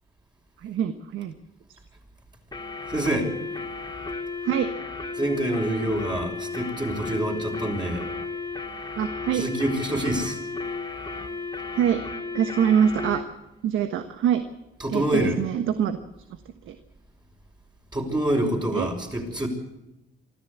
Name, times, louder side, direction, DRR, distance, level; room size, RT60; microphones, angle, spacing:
voice 1, 0.6-1.4 1.7-1.8 4.4-4.7 9.0-9.4 11.7-12.0 12.3-13.2 13.6-14.4 14.9-16.0 16.7-16.8 18.7-18.9, right 9 dB, 85° right, 9 dB, 1.3 m, -24 dB
sound 1, 2.5-13.3, left 4 dB, 20° left, 2.5 m, -34 dB
voice 2, 2.9-3.3 5.1-8.1 9.3-10.4 14.8-15.4 17.9-19.5, right 1 dB, 20° right, -1 dB, 5.4 m, -26 dB
24.5 x 14.0 x 8.2 m, 0.97 s
cardioid pair, 90°, 20 cm